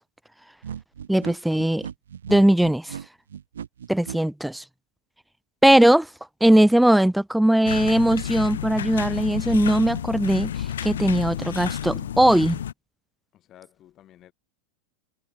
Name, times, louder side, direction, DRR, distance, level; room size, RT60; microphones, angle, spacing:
sound 1, 0.6-4.2, right 8 dB, 65° right, 0.4 m, -37 dB
voice 1, 1.1-1.9 2.3-2.9 3.9-4.6 5.6-6.1 6.4-10.5 10.8-12.6, right 1 dB, ahead, 0.5 m, -19 dB
voice 2, 3.9-4.3 13.3-14.3, left 12 dB, 30° left, 3.8 m, -53 dB
sound 2, 7.7-12.7, left 10 dB, 65° left, 0.3 m, -31 dB
figure-of-eight pair, 90°, 0 cm